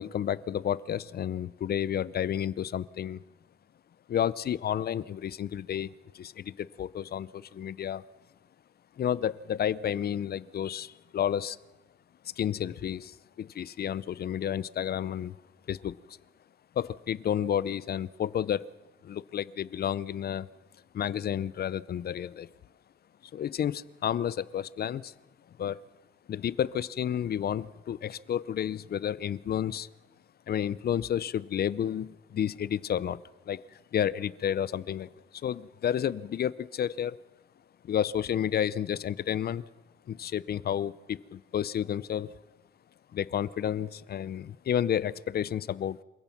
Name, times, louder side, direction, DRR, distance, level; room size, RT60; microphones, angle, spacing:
voice 1, 0.0-3.2 4.1-5.9 6.1-8.0 9.0-11.6 12.4-15.4 15.7-16.2 16.8-18.7 19.0-20.5 20.9-22.5 23.3-25.1 25.6-25.8 26.3-29.9 30.5-33.2 33.5-33.6 33.9-37.2 37.9-39.6 40.1-42.3 43.1-46.0, left 9 dB, 50° left, 0.6 m, -31 dB
27.5 x 16.0 x 6.0 m
cardioid pair, 90°, 20 cm